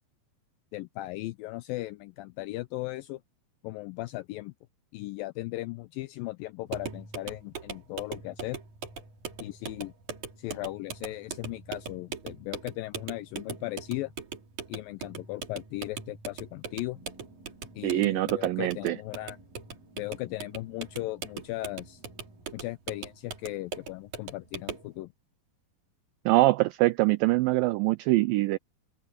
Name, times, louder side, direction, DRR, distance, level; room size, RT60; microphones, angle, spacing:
voice 1, 0.7-3.2 3.6-4.5 4.9-8.6 9.4-9.9 10.4-14.1 14.7-17.0 17.8-19.4 20.0-22.0 22.5-25.1, left 18 dB, 85° left, 2.0 m, -37 dB
sound 1, 6.7-24.9, right 6 dB, 50° right, 4.3 m, -41 dB
sound 2, 16.9-22.6, right 2 dB, 65° right, 9.6 m, -57 dB
voice 2, 17.8-19.0 26.3-28.6, right 19 dB, 90° right, 2.0 m, -24 dB
omnidirectional pair, 4.5 m